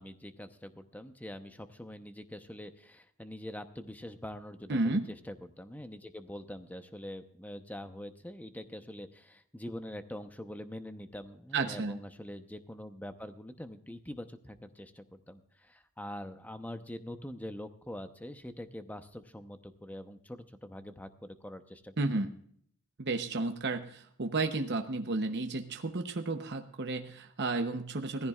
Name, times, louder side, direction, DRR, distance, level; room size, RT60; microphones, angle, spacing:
voice 1, 0.0-21.9, left 1 dB, 5° left, 9 dB, 0.8 m, -44 dB
voice 2, 4.7-5.1 11.5-12.0 22.0-22.3 23.0-28.3, right 3 dB, 50° right, 5 dB, 0.9 m, -32 dB
17.5 x 15.0 x 2.4 m, 0.62 s
head